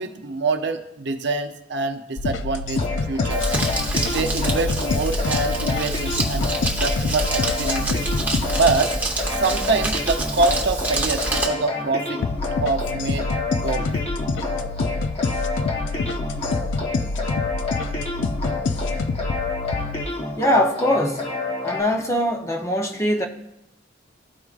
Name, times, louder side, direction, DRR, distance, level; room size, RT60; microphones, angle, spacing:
voice 1, 0.0-3.5 4.1-6.5 6.8-8.0 8.5-8.9 9.3-12.2 12.6-13.3 13.6-13.9, right 3 dB, 65° right, 6 dB, 0.7 m, -25 dB
sound 1, 2.2-8.8 12.2-20.1, left 3 dB, 75° left, 0.5 m, -27 dB
sound 2, 2.7-21.8, left 3 dB, 30° left, 1.1 m, -29 dB
Crumpling crinkling, 3.3-11.5, right 2 dB, 10° right, 1.0 m, -27 dB
voice 2, 20.4-21.3 21.6-23.3, equal, 15° left, 2 dB, 0.6 m, -22 dB
14.0 x 4.7 x 2.4 m, 0.84 s
head